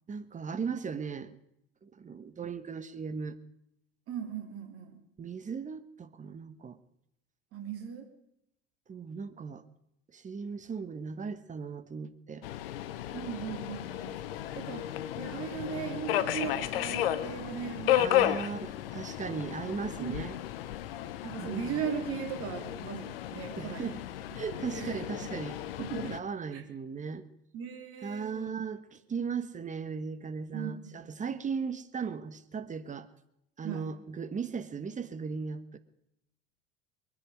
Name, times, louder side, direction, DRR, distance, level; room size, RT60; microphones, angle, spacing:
voice 1, 0.1-1.3 1.8-3.4 5.2-6.8 8.9-9.6 10.1-12.5 18.0-20.4 21.4-21.8 23.6-24.0 24.3-25.6 26.0-27.2 28.0-33.1 33.6-35.8, right 5 dB, 25° right, 12 dB, 1.4 m, -37 dB
voice 2, 4.1-5.0 7.5-8.1 13.1-14.2 14.5-14.9 15.2-18.5 20.0-20.3 21.2-24.0 24.3-25.0 25.8-26.2 26.5-26.6 27.5-28.5 30.5-31.0 33.6-33.9, right 7 dB, 50° right, 5 dB, 2.9 m, -38 dB
Subway metro underground, 12.4-26.2, left 12 dB, 75° left, 0.9 m, -33 dB
22.0 x 10.0 x 4.8 m, 0.77 s
hypercardioid pair, 70°, 29 cm